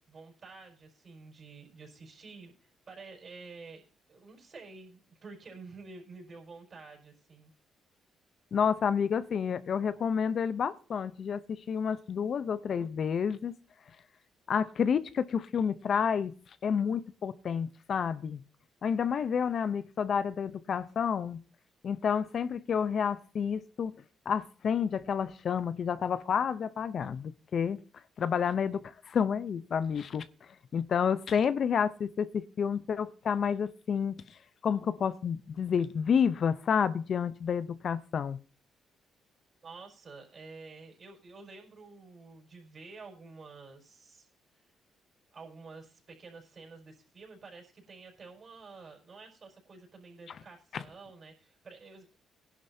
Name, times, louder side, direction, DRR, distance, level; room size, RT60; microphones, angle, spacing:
voice 1, 0.0-3.8 4.1-7.5 39.6-44.3 45.3-52.2, right 4 dB, 45° right, 1 dB, 5.2 m, -50 dB
voice 2, 8.5-13.5 14.5-16.3 16.6-18.4 18.8-21.4 21.8-23.9 24.3-27.8 28.2-28.8 29.1-30.3 30.7-34.2 34.6-38.4 50.7-50.8, left 7 dB, 55° left, 14 dB, 0.6 m, -29 dB
18.5 x 11.0 x 2.7 m, 0.39 s
cardioid pair, 90°, 0 cm